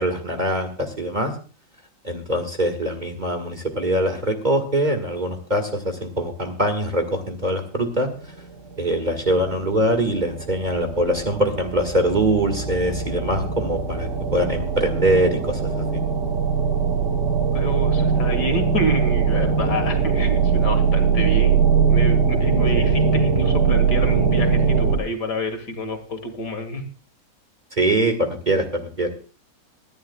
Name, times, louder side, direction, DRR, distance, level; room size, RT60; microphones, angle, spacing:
voice 1, 0.0-1.3 2.0-8.1 8.8-15.8 22.8-22.9 27.8-29.1, right 1 dB, 25° right, 6 dB, 1.9 m, -23 dB
sound 1, 8.2-25.0, right 5 dB, 75° right, 3.8 m, -21 dB
voice 2, 17.5-21.6 21.9-26.9, equal, 70° left, 6 dB, 2.7 m, -28 dB
23.5 x 11.0 x 2.3 m, 0.38 s
omnidirectional pair, 1.9 m